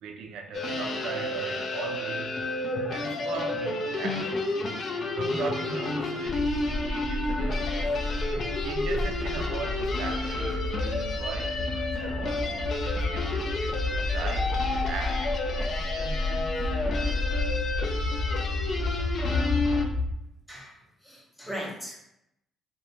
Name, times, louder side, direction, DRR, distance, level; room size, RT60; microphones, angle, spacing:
voice 1, 0.0-2.5 2.9-4.5 5.2-7.8 8.6-13.8 14.1-16.5, right 5 dB, 75° right, 0.3 m, -39 dB
sound 1, 0.5-19.8, left 2 dB, 40° left, 0.3 m, -31 dB
sound 2, 6.2-20.1, left 2 dB, 60° left, 1.0 m, -31 dB
voice 2, 21.0-22.0, equal, ahead, 0.6 m, -38 dB
2.4 x 2.1 x 2.9 m
cardioid pair, 145°, 0 cm